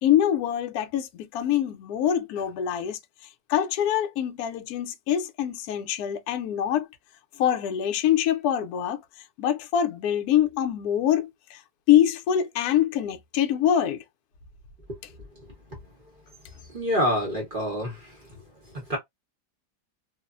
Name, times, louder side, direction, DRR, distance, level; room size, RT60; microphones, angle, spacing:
voice 1, 0.0-3.0 3.5-6.9 7.4-9.0 9.4-11.6 11.9-14.0, left 10 dB, 75° left, 0.8 m, -24 dB
voice 2, 16.7-18.4 18.7-19.0, equal, 45° right, 0.7 m, -27 dB
3.1 x 2.0 x 2.3 m
omnidirectional pair, 2.1 m